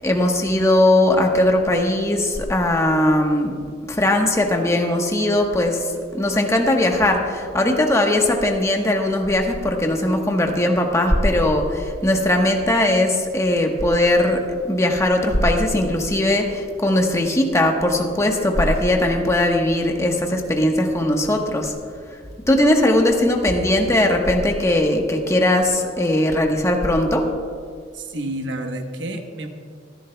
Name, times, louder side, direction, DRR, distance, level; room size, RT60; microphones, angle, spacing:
voice 1, 0.0-3.5 3.9-21.7 22.5-27.3, left 1 dB, 15° left, 2 dB, 1.1 m, -19 dB
voice 2, 27.9-29.5, right 1 dB, 90° right, 5 dB, 1.1 m, -29 dB
24.0 x 11.0 x 2.2 m, 2.1 s
head